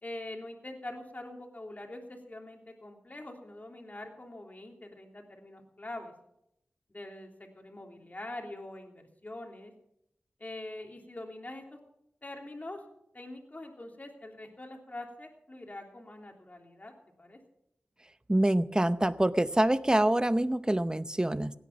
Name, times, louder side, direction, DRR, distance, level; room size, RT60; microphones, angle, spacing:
voice 1, 0.0-6.1 6.9-9.7 10.4-11.8 12.2-12.8 13.1-16.9 17.2-17.4, left 1 dB, 40° left, 2 dB, 3.3 m, -44 dB
voice 2, 18.3-21.5, right 1 dB, 20° right, 14 dB, 0.7 m, -26 dB
17.0 x 10.0 x 6.0 m, 0.79 s
cardioid pair, 45°, 4 cm